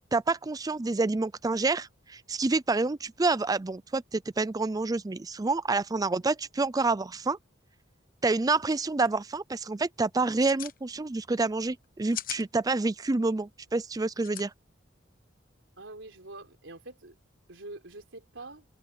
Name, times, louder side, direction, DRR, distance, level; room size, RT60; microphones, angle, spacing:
voice 1, 0.1-7.4 8.2-14.5, right 3 dB, 20° right, 0.4 m, -28 dB
sound 1, 8.3-8.4 8.6-8.7 9.1-9.4 10.2-10.8 11.8-12.4 14.2-14.4, left 11 dB, 45° left, 0.9 m, -38 dB
voice 2, 15.8-17.1 17.5-18.6, right 2 dB, 75° right, 3.8 m, -45 dB
open air
head